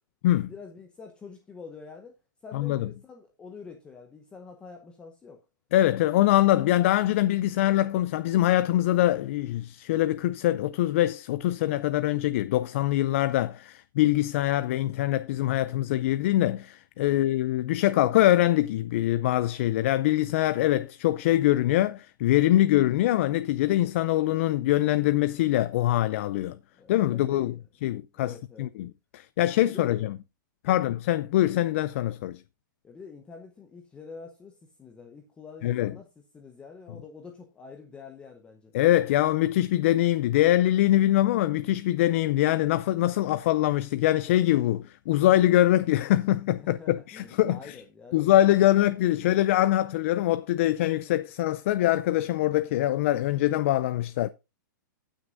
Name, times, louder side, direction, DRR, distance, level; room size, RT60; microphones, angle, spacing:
voice 1, 0.5-2.2 2.4-5.4 17.1-17.3 26.7-27.6 28.2-28.7 29.7-30.0 32.8-38.7 46.6-48.3, left 5 dB, 10° left, 0.9 m, -46 dB
voice 2, 2.5-2.9 5.7-26.6 26.9-27.5 27.8-28.9 29.1-30.2 30.6-32.4 35.6-35.9 38.7-47.8 48.1-54.3, left 14 dB, 40° left, 0.4 m, -23 dB
17.0 x 6.3 x 2.6 m
hypercardioid pair, 165°, 11 cm